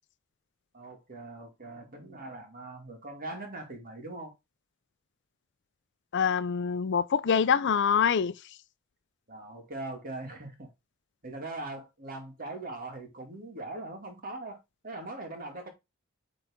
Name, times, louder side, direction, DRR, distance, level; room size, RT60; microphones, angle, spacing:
voice 1, 0.7-4.3 9.3-10.7 11.2-14.6 14.8-15.7, right 2 dB, 45° right, 2.3 m, -41 dB
voice 2, 6.1-8.3, left 6 dB, 55° left, 0.5 m, -25 dB
9.0 x 4.0 x 3.6 m
head